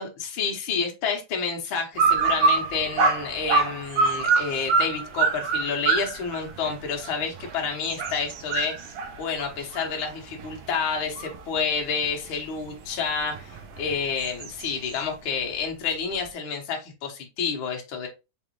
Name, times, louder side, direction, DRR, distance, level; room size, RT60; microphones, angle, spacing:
voice 1, 0.0-8.7 9.2-18.1, left 5 dB, 65° left, 1.3 m, -29 dB
sound 1, 2.0-11.6 12.0-15.0, right 4 dB, 75° right, 1.4 m, -26 dB
5.2 x 3.3 x 3.0 m
omnidirectional pair, 3.7 m